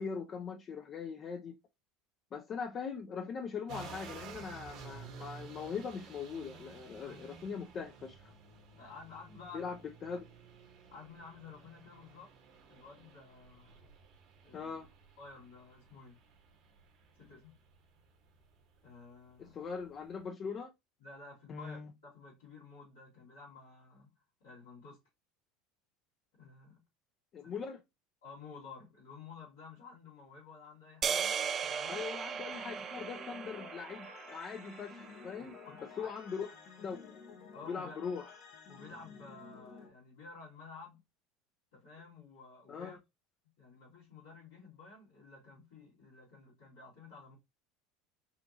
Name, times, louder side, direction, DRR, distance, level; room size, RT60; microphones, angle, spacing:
voice 1, 0.0-1.5 2.3-8.3 9.5-10.3 14.5-14.9 19.4-20.7 21.5-21.9 27.3-27.8 31.9-35.5 36.0-36.5 36.8-37.2 37.7-38.2 42.7-43.0, left 6 dB, 40° left, 0.6 m, -41 dB
sound 1, 3.7-20.2, right 6 dB, 60° right, 1.4 m, -54 dB
voice 2, 8.7-9.7 10.9-12.3 12.7-13.9 14.4-14.7 15.2-16.2 17.2-17.6 18.8-19.6 21.0-24.1 24.4-25.0 26.3-26.8 27.4-27.5 28.2-32.0 32.5-32.6 35.4-36.1 37.5-38.2 38.7-41.0 41.7-43.0 43.6-47.3, left 4 dB, 85° left, 2.5 m, -52 dB
sound 2, 31.0-35.4, right 7 dB, 40° right, 0.5 m, -37 dB
sound 3, 32.5-39.9, left 5 dB, 60° left, 0.9 m, -53 dB
4.9 x 2.6 x 2.8 m
hypercardioid pair, 80°, 0 cm